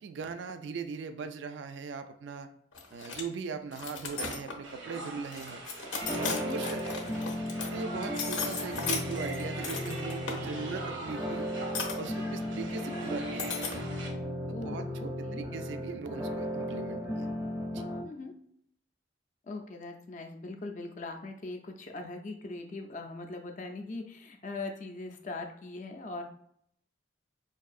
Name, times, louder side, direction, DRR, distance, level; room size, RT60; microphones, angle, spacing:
voice 1, 0.0-2.5 2.9-5.6 6.2-6.8 7.7-11.5 11.9-13.6 14.5-17.3 17.7-17.8, right 5 dB, 70° right, 8 dB, 0.3 m, -40 dB
sound 1, 2.7-3.2 3.7-4.7 5.3-7.7 8.0-10.4 11.7-11.9 13.4-13.8, left 4 dB, 90° left, 0.7 m, -36 dB
sound 2, 4.6-14.1, right 2 dB, 85° right, 0.7 m, -43 dB
sound 3, 6.0-18.0, equal, 10° right, 0.5 m, -36 dB
voice 2, 6.3-6.6 14.5-15.5 18.0-18.3 19.4-26.2, left 2 dB, 40° left, 4 dB, 0.4 m, -40 dB
4.6 x 2.6 x 2.4 m, 0.69 s
head